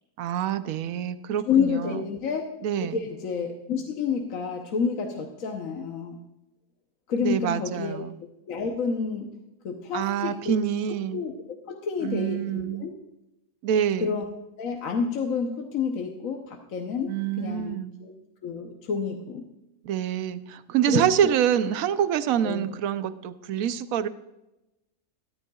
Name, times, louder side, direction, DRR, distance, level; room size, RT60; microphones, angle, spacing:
voice 1, 0.2-2.0 2.6-3.0 7.2-8.2 9.9-11.2 12.0-12.9 13.6-14.2 17.1-17.9 19.8-24.1, right 9 dB, 70° right, 12 dB, 1.0 m, -26 dB
voice 2, 1.5-2.5 2.8-6.2 7.1-8.0 8.5-9.3 9.6-10.5 10.9-11.3 11.7-12.9 14.0-14.2 14.6-18.1 18.4-19.5 20.9-21.4 22.4-22.7, left 6 dB, 60° left, 3 dB, 1.2 m, -29 dB
13.5 x 12.0 x 2.3 m, 0.92 s
omnidirectional pair, 1.7 m